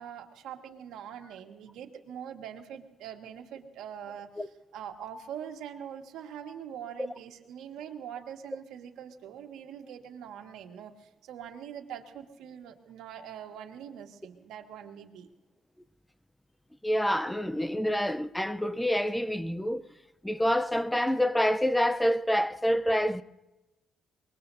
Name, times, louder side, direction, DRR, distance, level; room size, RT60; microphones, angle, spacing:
voice 1, 0.0-4.5 4.7-15.3, right 9 dB, 85° right, 1.8 m, -43 dB
voice 2, 16.8-19.9 20.2-23.2, equal, 5° left, 0.7 m, -27 dB
23.5 x 21.0 x 2.7 m
cardioid pair, 90°, 0 cm